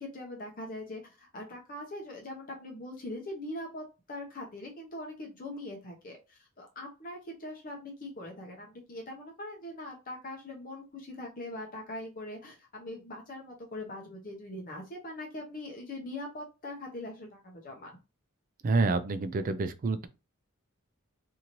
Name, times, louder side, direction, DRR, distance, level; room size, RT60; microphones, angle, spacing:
voice 1, 0.0-17.9, left 1 dB, 40° left, 0.8 m, -42 dB
voice 2, 18.6-20.1, right 3 dB, 40° right, 0.3 m, -28 dB
3.0 x 2.7 x 2.5 m
head